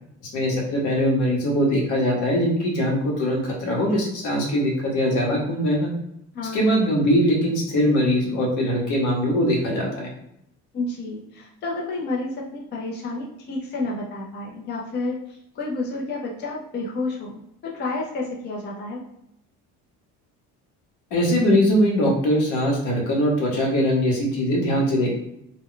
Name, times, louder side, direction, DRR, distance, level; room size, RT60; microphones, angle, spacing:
voice 1, 0.3-5.9 6.5-10.1 21.1-25.2, equal, 80° left, -1 dB, 1.0 m, -21 dB
voice 2, 10.7-15.2 15.6-19.0, left 2 dB, 35° left, -2 dB, 0.5 m, -30 dB
2.2 x 2.1 x 3.6 m, 0.77 s
cardioid pair, 150°, 30 cm